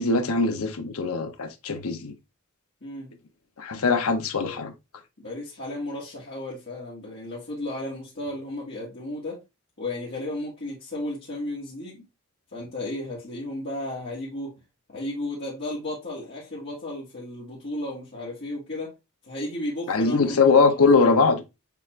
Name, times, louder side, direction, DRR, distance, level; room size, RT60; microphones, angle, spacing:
voice 1, 0.0-2.1 3.6-4.7 19.9-21.4, left 4 dB, 80° left, 0.8 m, -21 dB
voice 2, 2.8-3.1 3.8-4.0 4.4-4.6 5.2-9.4 9.8-12.0 12.5-14.5 14.9-18.9 19.3-20.6 20.9-21.2, left 1 dB, 50° left, 1.6 m, -34 dB
6.9 x 2.5 x 3.1 m
head